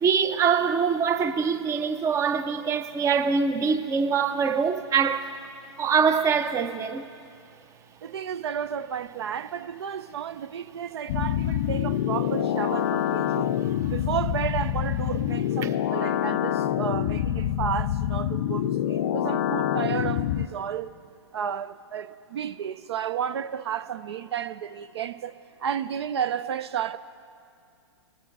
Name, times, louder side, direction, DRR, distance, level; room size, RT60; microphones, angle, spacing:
voice 1, 0.0-5.4 5.8-7.1, right 6 dB, 20° right, 0.6 m, -24 dB
voice 2, 8.0-13.5 13.9-20.9 21.3-25.3 25.6-27.0, right 8 dB, 65° right, 0.4 m, -32 dB
sound 1, 11.1-20.5, left 11 dB, 50° left, 0.4 m, -26 dB
20.0 x 6.8 x 4.0 m
hypercardioid pair, 115°, 15 cm